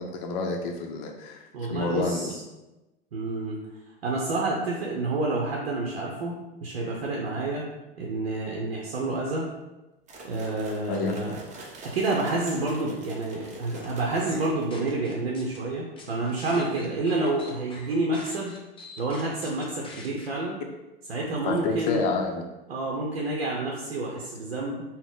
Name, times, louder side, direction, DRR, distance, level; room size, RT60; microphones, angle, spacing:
voice 1, 0.0-1.4 1.7-2.4 10.9-11.2 21.4-22.4, left 3 dB, 50° left, 2 dB, 0.6 m, -29 dB
voice 2, 1.5-2.4 3.1-3.6 4.0-6.4 6.6-7.7 8.0-9.5 10.2-11.4 11.8-18.5 19.0-20.6 21.1-22.1 22.7-24.8, right 2 dB, 75° right, -2 dB, 0.6 m, -29 dB
sound 1, 10.1-15.0, right 2 dB, 25° right, 0.7 m, -44 dB
sound 2, 13.4-13.9 14.3-15.6 16.0-20.3, left 2 dB, 15° left, 0.7 m, -46 dB
3.9 x 2.1 x 3.6 m, 1.0 s
figure-of-eight pair, 85°, 30 cm